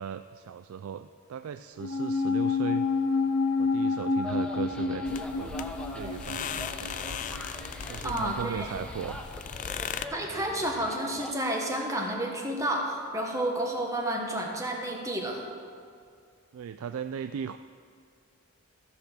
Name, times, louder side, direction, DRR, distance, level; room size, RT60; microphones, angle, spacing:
voice 1, 0.0-2.9 3.6-5.6 5.9-6.9 7.9-9.3 16.5-17.6, right 7 dB, 70° right, 10 dB, 0.3 m, -37 dB
sound 1, 1.8-8.4 8.6-8.7, left 4 dB, 70° left, 0.7 m, -29 dB
sound 2, 4.2-11.3, left 1 dB, 5° left, 0.7 m, -43 dB
sound 3, 5.1-10.1, left 7 dB, 35° left, 0.3 m, -38 dB
voice 2, 8.0-8.7 10.1-15.5, right 1 dB, 15° right, 0 dB, 1.3 m, -30 dB
14.5 x 6.8 x 6.4 m, 2.3 s
head